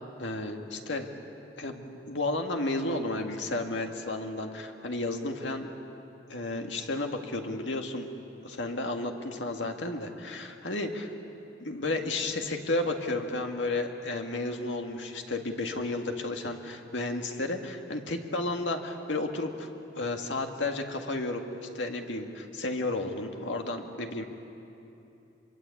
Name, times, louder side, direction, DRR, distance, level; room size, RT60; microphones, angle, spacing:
voice 1, 0.2-1.1 1.6-5.7 6.3-8.1 8.4-11.1 11.6-19.7 20.0-24.2, left 2 dB, 85° left, 3 dB, 2.0 m, -32 dB
25.5 x 23.0 x 8.6 m, 2.9 s
head